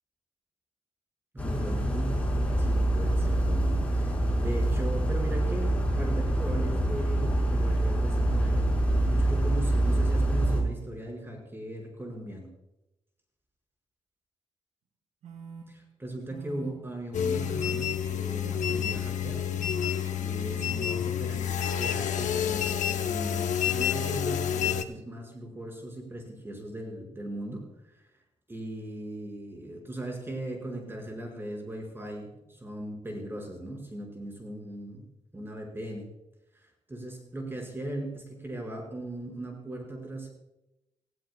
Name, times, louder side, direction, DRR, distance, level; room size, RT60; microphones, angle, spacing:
voice 1, 1.3-2.1 2.6-4.1 4.4-8.7 9.1-12.5 15.7-19.4 20.2-28.0 28.5-35.1 35.3-36.1 36.5-40.3, right 1 dB, 20° right, 1 dB, 5.5 m, -38 dB
sound 1, 1.4-10.6, right 1 dB, 10° left, 5.1 m, -25 dB
sound 2, 15.2-15.6 16.3-16.7 17.4-17.8 18.4-18.8 19.5-19.9 20.6-21.0, right 6 dB, 90° right, 4.5 m, -44 dB
sound 3, 17.1-24.8, left 9 dB, 90° left, 0.9 m, -29 dB
28.0 x 15.5 x 2.3 m, 0.94 s
wide cardioid pair, 125°, 12 cm